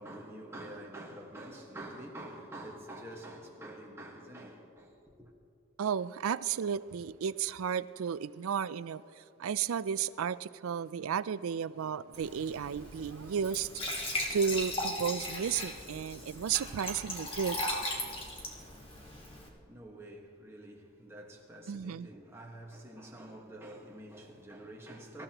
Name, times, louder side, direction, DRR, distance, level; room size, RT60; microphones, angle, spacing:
voice 1, 0.0-5.3 19.5-25.2, right 1 dB, 10° right, 1.5 m, -47 dB
voice 2, 5.8-9.0 9.4-13.7 14.3-17.6 21.7-22.1, right 7 dB, 75° right, 0.4 m, -33 dB
Glass / Trickle dribble / Fill (with liquid), 12.1-19.5, left 1 dB, 25° left, 1.7 m, -38 dB
25.0 x 14.0 x 3.0 m
head